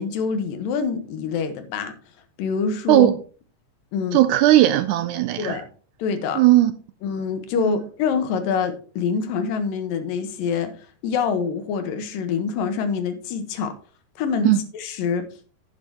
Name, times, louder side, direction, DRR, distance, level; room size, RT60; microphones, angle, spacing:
voice 1, 0.0-1.9 2.4-3.1 3.9-4.2 5.4-5.7 6.0-6.4 7.0-10.7 11.0-13.8 14.2-15.3, left 5 dB, 90° left, 2.8 m, -25 dB
voice 2, 4.1-5.6 6.4-6.7 7.6-7.8 14.4-14.6, right 14 dB, 80° right, 1.8 m, -17 dB
11.0 x 9.5 x 2.9 m
omnidirectional pair, 3.9 m